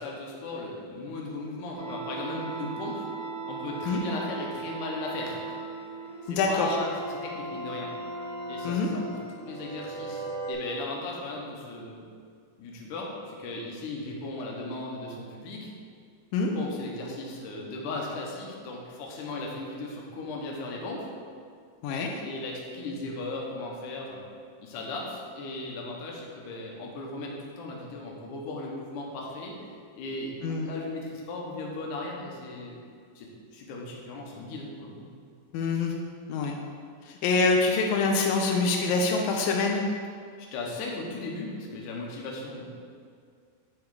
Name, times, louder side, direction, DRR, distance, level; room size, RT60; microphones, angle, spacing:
voice 1, 0.0-3.1 3.5-5.9 6.2-7.9 8.5-9.0 9.3-12.0 12.6-15.7 16.5-21.1 22.2-24.2 24.6-29.5 30.0-32.8 33.2-35.1 40.4-42.7, left 2 dB, 70° left, -1 dB, 2.4 m, -37 dB
sound 1, 1.7-10.5, right 3 dB, 75° right, 3.1 m, -37 dB
voice 2, 6.3-6.8 8.6-8.9 16.3-16.6 21.8-22.1 30.4-30.7 35.5-35.9 36.3-36.6 37.1-39.8, left 4 dB, 90° left, 1 dB, 2.4 m, -25 dB
8.7 x 4.7 x 4.8 m, 2.2 s
omnidirectional pair, 4.0 m